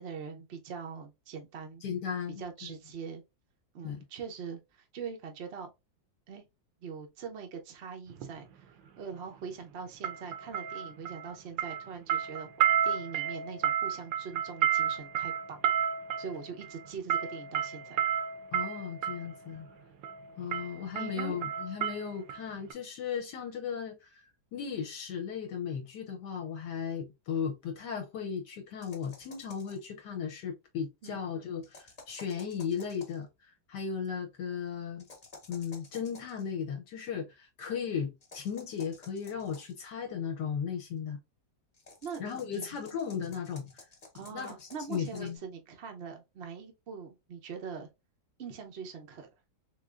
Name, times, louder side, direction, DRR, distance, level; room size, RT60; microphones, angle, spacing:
voice 1, 0.0-1.8 2.4-3.2 3.7-5.7 6.3-6.4 6.8-8.7 9.0-12.5 12.8-15.7 16.2-18.0 21.0-21.3 31.0-31.2 42.0-42.2 42.5-42.7 44.1-47.9 48.4-49.3, right 6 dB, 65° right, 0.6 m, -42 dB
voice 2, 1.8-2.7 3.8-4.0 18.5-19.7 20.4-35.0 35.5-41.2 42.2-43.9 44.1-45.4, left 7 dB, 70° left, 1.1 m, -36 dB
sound 1, 8.1-8.3 10.0-11.3 11.6-19.3 20.0-20.2 20.5-22.4 22.7-22.8, right 9 dB, 80° right, 1.3 m, -31 dB
sound 2, 28.8-29.9 31.6-33.2 35.0-36.4 38.2-39.8 41.7-45.4, left 3 dB, 30° left, 0.9 m, -53 dB
3.9 x 3.2 x 2.3 m
omnidirectional pair, 2.0 m